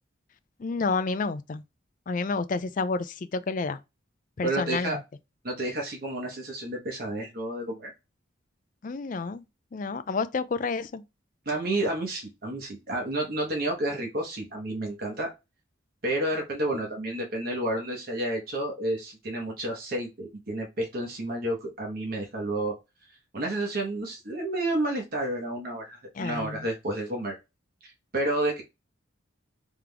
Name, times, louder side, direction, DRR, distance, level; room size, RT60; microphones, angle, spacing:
voice 1, 0.6-1.6 2.1-3.8 4.4-5.0 8.8-9.4 9.7-11.0 26.1-26.7, left 4 dB, 40° left, 0.4 m, -30 dB
voice 2, 4.4-5.0 5.4-7.9 11.5-15.3 16.0-22.7 23.3-27.4 27.8-28.6, right 1 dB, 50° right, 1.1 m, -30 dB
3.6 x 3.4 x 3.4 m
head